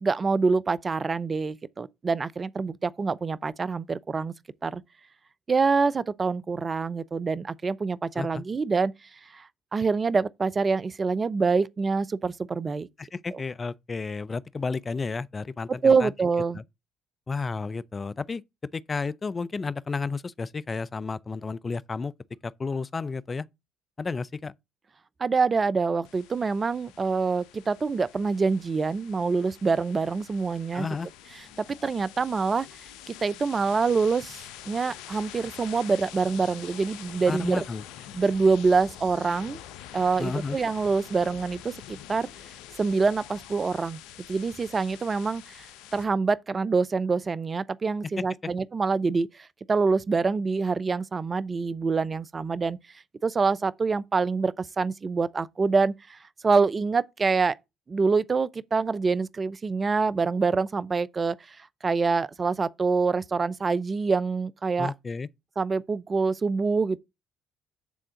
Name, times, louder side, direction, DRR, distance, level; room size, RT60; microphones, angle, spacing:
voice 1, 0.0-4.3 4.6-4.8 5.5-8.9 9.3-12.9 15.8-16.6 25.2-30.9 31.6-32.7 33.1-37.6 38.1-39.6 39.9-42.3 42.8-44.0 44.3-45.7 45.9-52.8 53.2-56.2 56.4-57.6 57.9-61.6 61.8-64.9 65.6-67.0, right 4 dB, 35° right, 0.6 m, -26 dB
voice 2, 13.0-16.1 16.5-16.6 17.3-18.4 18.7-22.1 22.4-23.4 24.0-24.5 30.7-31.1 37.3-37.8 40.2-40.6 64.8-65.3, left 4 dB, 30° left, 0.5 m, -32 dB
sound 1, 26.0-46.0, left 11 dB, 75° left, 0.7 m, -46 dB
9.2 x 3.7 x 5.7 m
hypercardioid pair, 60°, 0 cm